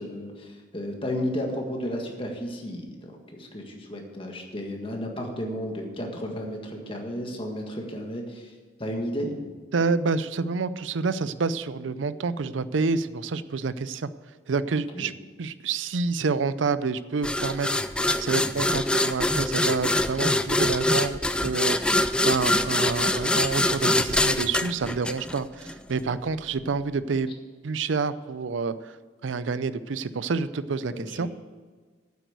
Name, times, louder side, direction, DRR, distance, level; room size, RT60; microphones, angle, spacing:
voice 1, 0.0-8.5 8.8-9.5 14.9-15.1 26.1-26.2 30.9-31.3, equal, 30° left, 2 dB, 1.7 m, -33 dB
voice 2, 9.7-14.1 14.5-15.1 15.4-27.3 27.6-29.0 29.2-31.3, right 4 dB, 90° right, 15 dB, 0.5 m, -28 dB
sound 1, 17.2-25.7, left 1 dB, 5° left, 0.3 m, -24 dB
9.2 x 8.2 x 8.0 m, 1.4 s
head